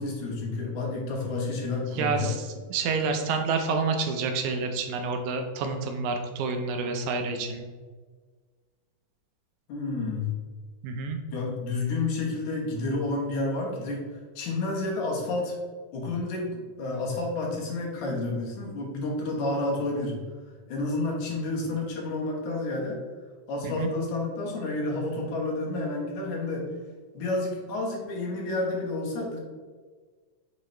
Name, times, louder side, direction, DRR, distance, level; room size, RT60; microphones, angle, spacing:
voice 1, 0.0-2.3 9.7-10.3 11.3-14.0 14.4-15.6 15.9-20.2 20.7-23.0 23.5-26.7 27.1-29.4, left 2 dB, 75° left, -2 dB, 2.6 m, -30 dB
voice 2, 2.0-7.7 10.8-11.2 23.6-23.9, right 4 dB, 80° right, 5 dB, 1.9 m, -28 dB
8.0 x 3.9 x 3.2 m, 1.5 s
omnidirectional pair, 3.5 m